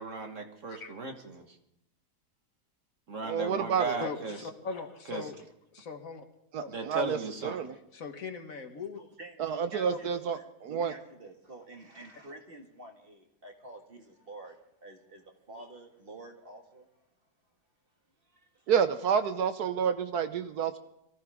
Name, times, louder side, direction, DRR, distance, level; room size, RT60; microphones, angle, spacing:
voice 1, 0.0-1.6 3.1-4.4 5.1-5.3 6.7-7.6, right 3 dB, 50° right, 4 dB, 1.9 m, -36 dB
voice 2, 3.2-4.0 6.5-7.7 9.4-10.9 18.7-20.8, right 7 dB, 75° right, 10 dB, 1.3 m, -29 dB
voice 3, 4.0-5.4 5.7-6.2 6.6-6.7 7.9-9.0 9.8-10.0, left 4 dB, 55° left, 6 dB, 1.7 m, -40 dB
voice 4, 8.9-17.0 18.2-18.7 20.7-20.8, right 2 dB, 35° right, 3 dB, 2.1 m, -49 dB
24.0 x 14.5 x 3.6 m, 0.82 s
omnidirectional pair, 1.7 m